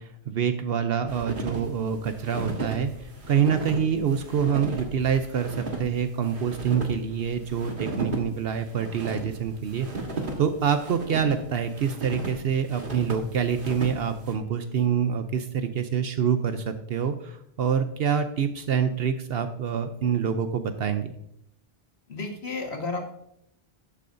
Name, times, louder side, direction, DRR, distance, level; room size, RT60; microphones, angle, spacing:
voice 1, 0.0-9.9 10.4-21.1, right 7 dB, 70° right, 9 dB, 0.9 m, -26 dB
sound 1, 1.1-14.3, right 2 dB, 55° right, 1.7 m, -36 dB
voice 2, 22.1-23.1, left 3 dB, 85° left, 1 dB, 2.0 m, -32 dB
12.5 x 8.5 x 2.6 m, 0.73 s
omnidirectional pair, 1.1 m